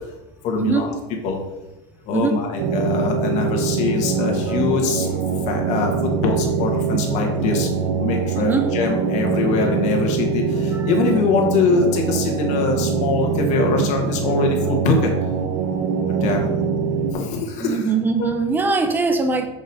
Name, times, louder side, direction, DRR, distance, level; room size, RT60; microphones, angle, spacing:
voice 1, 0.4-0.9 1.2-1.4 2.0-7.7 8.0-15.1 16.1-16.5 17.1-17.9 18.2-18.3, left 4 dB, 50° left, 2 dB, 1.7 m, -23 dB
sound 1, 2.6-17.1, right 6 dB, 70° right, 0.7 m, -23 dB
voice 2, 8.4-8.7 10.7-10.9 17.6-19.5, right 4 dB, 10° right, 7 dB, 0.7 m, -21 dB
6.1 x 5.1 x 4.3 m, 1.0 s
supercardioid pair, 140°, 15 cm